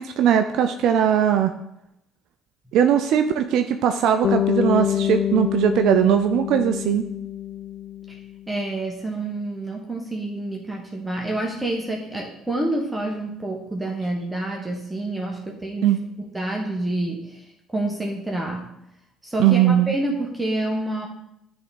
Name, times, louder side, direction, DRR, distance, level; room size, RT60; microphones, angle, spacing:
voice 1, 0.0-1.5 2.7-7.0 15.8-16.0 19.4-19.9, right 9 dB, 70° right, 7 dB, 0.4 m, -19 dB
Bass guitar, 4.2-8.5, left 10 dB, 50° left, 0.3 m, -26 dB
voice 2, 8.5-16.0 16.3-18.7 19.2-21.1, right 1 dB, 10° right, 0 dB, 1.1 m, -28 dB
9.6 x 3.5 x 4.0 m, 0.82 s
hypercardioid pair, 65°, 0 cm